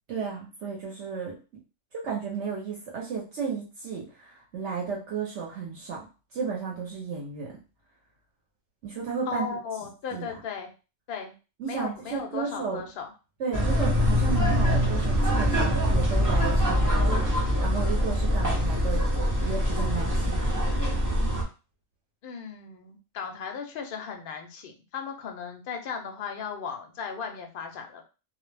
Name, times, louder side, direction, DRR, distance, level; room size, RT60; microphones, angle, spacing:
voice 1, 0.1-1.4 1.9-6.0 6.3-7.5 8.8-9.6 10.1-10.3 11.6-12.8 13.4-19.1 19.4-20.5, right 6 dB, 65° right, -2 dB, 0.9 m, -33 dB
voice 2, 9.3-10.7 11.1-11.3 11.6-13.1 22.2-28.1, left 6 dB, 60° left, 3 dB, 0.6 m, -36 dB
sound 1, 13.5-21.4, equal, 25° right, 0.4 m, -24 dB
2.4 x 2.0 x 3.2 m, 0.32 s
omnidirectional pair, 1.4 m